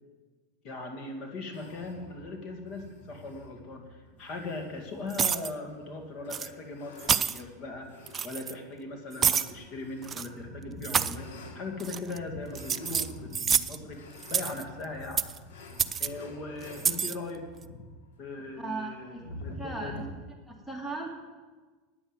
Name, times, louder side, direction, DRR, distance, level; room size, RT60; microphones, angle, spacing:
voice 1, 0.6-7.9 8.2-15.2 16.0-17.4 18.2-20.1, left 2 dB, 45° left, 3 dB, 2.2 m, -39 dB
sound 1, 1.5-20.1, left 1 dB, 75° left, 2.0 m, -47 dB
sound 2, 5.1-5.5 6.3-6.5 7.0-7.4 8.1-8.5 9.2-9.5 10.0-10.3 10.8-11.2 11.8-12.2 12.5-13.8 14.2-14.6 15.2-15.4 15.8-16.1 16.7-17.1, right 7 dB, 25° right, 0.4 m, -28 dB
voice 2, 18.6-19.2 19.5-20.0 20.5-21.1, right 3 dB, ahead, 0 dB, 2.0 m, -37 dB
9.9 x 7.8 x 8.9 m, 1.3 s
supercardioid pair, 125°, 0 cm